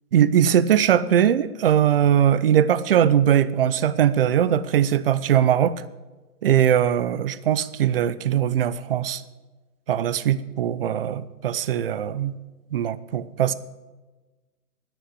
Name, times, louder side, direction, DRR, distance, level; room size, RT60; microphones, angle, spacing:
voice 1, 0.1-5.8 6.4-9.2 9.9-12.4 12.7-13.5, right 10 dB, 40° right, 17 dB, 0.6 m, -20 dB
11.0 x 10.0 x 8.4 m, 1.2 s
hypercardioid pair, 145°, 47 cm